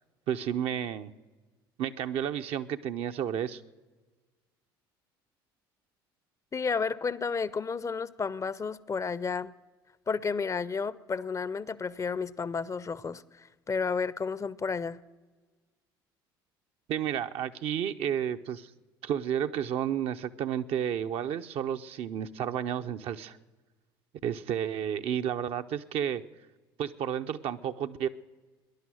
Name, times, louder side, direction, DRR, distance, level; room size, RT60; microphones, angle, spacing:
voice 1, 0.3-1.1 1.8-3.6 16.9-18.7 19.0-23.4 24.2-26.2 26.8-28.1, right 9 dB, 55° right, 0.7 m, -31 dB
voice 2, 6.5-9.5 10.1-15.0, left 5 dB, 25° left, 0.5 m, -32 dB
18.5 x 11.0 x 6.3 m
hypercardioid pair, 65°, 12 cm